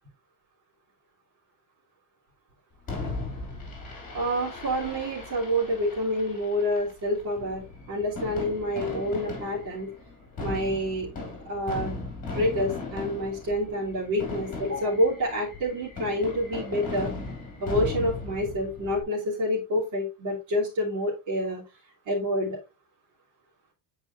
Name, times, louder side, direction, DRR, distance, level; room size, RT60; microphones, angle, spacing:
Fireworks, 2.9-19.0, left 3 dB, 20° left, 3.0 m, -37 dB
voice 1, 4.1-9.9 10.4-11.1 11.4-11.9 12.3-17.1 17.6-21.6 22.1-22.6, equal, 45° right, -7 dB, 2.9 m, -28 dB
8.8 x 4.8 x 2.8 m, 0.27 s
cardioid pair, 160°, 44 cm